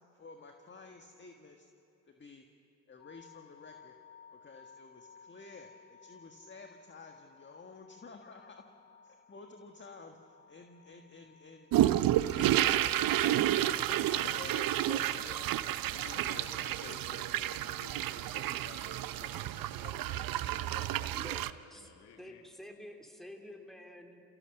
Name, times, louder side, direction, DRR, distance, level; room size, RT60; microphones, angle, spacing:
voice 1, 0.1-1.7 2.1-2.4 2.9-3.9 4.3-8.6 9.0-12.1 12.6-12.9 13.2-15.6 16.1-17.2, left 3 dB, 25° left, 4 dB, 1.6 m, -52 dB
sound 1, 3.0-17.0, left 6 dB, 85° left, 1.4 m, -60 dB
sound 2, 11.7-21.5, right 13 dB, 55° right, 0.7 m, -30 dB
voice 2, 12.0-12.9 13.8-13.9 14.2-15.4 15.9-22.5, left 7 dB, 65° left, 6 dB, 1.5 m, -52 dB
voice 3, 21.1-21.9 22.2-24.2, left 1 dB, ahead, 3 dB, 2.9 m, -49 dB
29.5 x 16.0 x 6.8 m, 2.8 s
hypercardioid pair, 50°, 42 cm